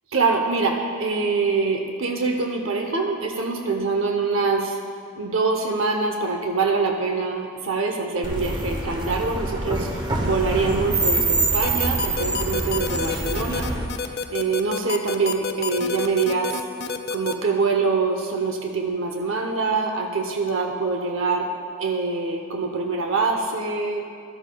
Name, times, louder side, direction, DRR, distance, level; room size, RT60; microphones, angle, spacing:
voice 1, 0.1-4.8 5.2-16.6 17.1-21.5 21.8-24.0, right 4 dB, 75° right, 3 dB, 0.7 m, -24 dB
sound 1, 8.2-13.9, right 2 dB, 20° right, 0.8 m, -25 dB
sound 2, 11.6-17.3, left 5 dB, 55° left, 0.5 m, -28 dB
13.0 x 13.0 x 2.3 m, 2.3 s
head